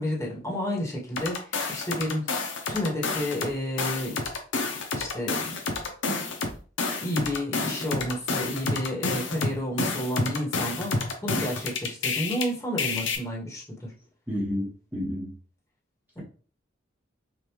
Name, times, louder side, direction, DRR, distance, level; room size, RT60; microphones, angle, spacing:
voice 1, 0.0-2.2 2.7-4.2 4.7-5.6 7.0-13.9 16.1-16.2, equal, 15° left, -5 dB, 1.4 m, -31 dB
sound 1, 1.2-3.5 3.8-12.4 12.8-13.2, left 3 dB, 75° left, 0.8 m, -29 dB
voice 2, 14.3-15.3, equal, 10° right, -6 dB, 1.1 m, -30 dB
5.4 x 2.5 x 3.1 m, 0.39 s
head